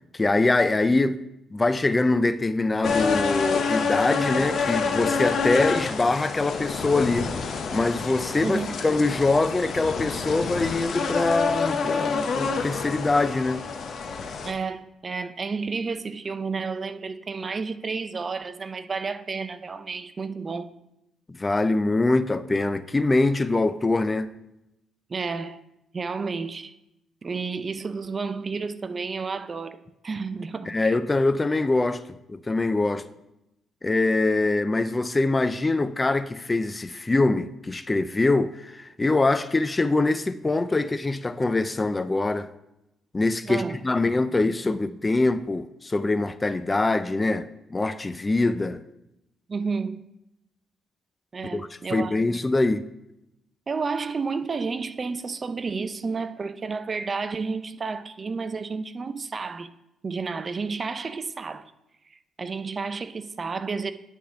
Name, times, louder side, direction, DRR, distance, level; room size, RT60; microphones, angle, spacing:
voice 1, 0.1-1.2 1.5-7.3 7.7-13.7 21.3-24.3 30.7-32.0 32.3-33.1 33.8-42.5 43.1-48.8 51.5-52.9, left 2 dB, 20° left, 0.3 m, -24 dB
sound 1, 2.8-14.5, left 5 dB, 60° left, 0.8 m, -27 dB
voice 2, 8.4-8.8 14.4-20.7 25.1-25.6 25.9-26.7 27.2-31.0 43.4-43.8 49.5-50.0 51.3-52.3 53.7-59.7 60.0-61.6 62.4-63.9, right 4 dB, 35° right, 0.5 m, -31 dB
10.0 x 3.6 x 5.6 m
cardioid pair, 90°, 0 cm